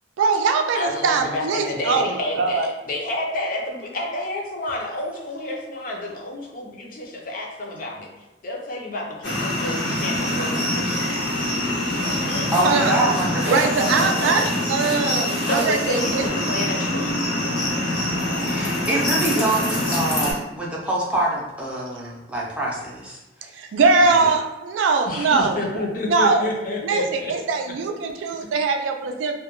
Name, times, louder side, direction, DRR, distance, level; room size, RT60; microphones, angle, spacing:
voice 1, 0.2-2.7 12.6-12.9 13.5-16.2 23.5-26.5 26.8-29.4, right 4 dB, 85° right, 4 dB, 0.3 m, -22 dB
voice 2, 0.7-8.1 8.4-11.1 12.0-12.5 15.5-17.2 19.2-19.5 25.1-27.3 28.4-28.5, left 1 dB, 45° left, -1 dB, 0.5 m, -29 dB
sound 1, 9.2-20.3, left 1 dB, 75° left, 0.9 m, -24 dB
voice 3, 12.5-13.7 18.4-23.2 24.0-24.3, right 1 dB, 5° right, -5 dB, 0.4 m, -25 dB
2.1 x 2.1 x 2.9 m, 1.0 s
head